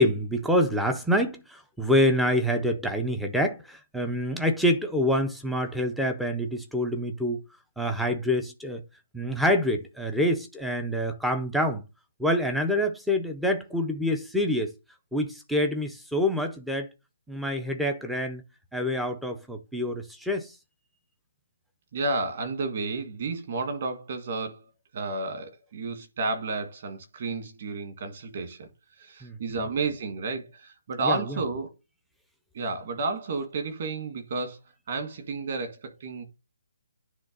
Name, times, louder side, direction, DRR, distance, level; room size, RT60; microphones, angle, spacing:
voice 1, 0.0-7.4 7.8-8.8 9.1-11.8 12.2-14.7 15.1-16.9 17.3-18.4 18.7-20.5 29.2-29.4 31.0-31.2, left 1 dB, ahead, 0.5 m, -26 dB
voice 2, 21.9-24.6 24.9-28.7 29.0-31.7 32.5-34.6 34.9-36.2, right 3 dB, 35° right, 1.8 m, -31 dB
9.8 x 3.3 x 5.2 m
hypercardioid pair, 175°, 0 cm